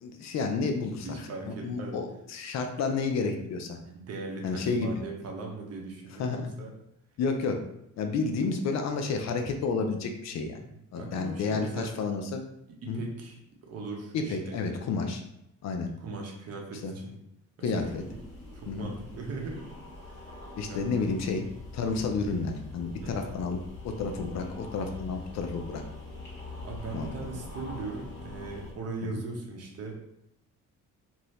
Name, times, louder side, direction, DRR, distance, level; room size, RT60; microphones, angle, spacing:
voice 1, 0.0-1.1 1.5-3.8 4.4-4.9 6.2-6.5 7.2-7.6 8.0-10.6 10.9-12.4 12.9-13.0 14.1-15.2 15.6-15.9 16.8-16.9 17.6-18.0 18.7-18.9 20.6-21.5 21.7-23.6 23.8-25.8 26.9-27.1 29.1-29.2, left 4 dB, 55° left, 5 dB, 0.5 m, -30 dB
voice 2, 1.0-2.0 3.8-6.7 10.6-11.9 12.7-14.7 16.0-17.2 17.6-17.8 18.1-18.2 18.5-19.7 20.0-20.4 20.7-20.8 23.0-23.4 26.6-29.9, right 3 dB, 50° right, 0 dB, 0.8 m, -39 dB
sound 1, 17.8-28.7, left 2 dB, 35° left, 1.3 m, -43 dB
2.7 x 2.7 x 3.1 m, 0.80 s
cardioid pair, 125°, 32 cm